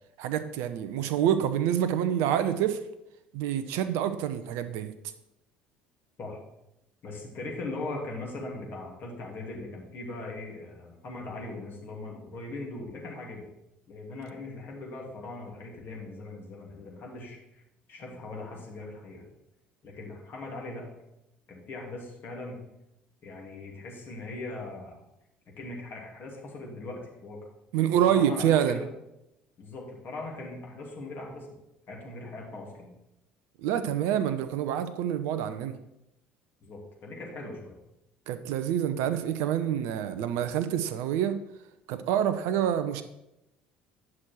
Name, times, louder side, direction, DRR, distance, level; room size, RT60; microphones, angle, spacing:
voice 1, 0.2-2.8 3.3-4.9 27.7-28.8 33.6-35.8 38.3-41.4 41.9-43.0, right 10 dB, 65° right, 11 dB, 0.7 m, -27 dB
voice 2, 7.0-13.4 13.9-17.6 17.9-19.2 19.8-20.9 21.5-22.6 23.2-24.9 25.6-27.4 28.1-28.9 29.6-31.5 31.9-32.9 36.6-37.8, left 2 dB, 45° left, -1 dB, 2.9 m, -40 dB
9.8 x 6.2 x 4.6 m, 0.88 s
figure-of-eight pair, 60°, 5 cm